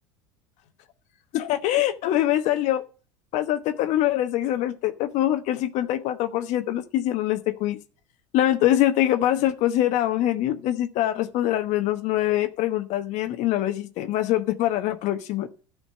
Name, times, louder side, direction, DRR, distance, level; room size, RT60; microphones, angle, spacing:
voice 1, 1.3-2.8 3.3-7.8 8.3-15.6, left 13 dB, 55° left, 1.2 m, -24 dB
12.5 x 5.1 x 7.5 m
hypercardioid pair, 85°, 14 cm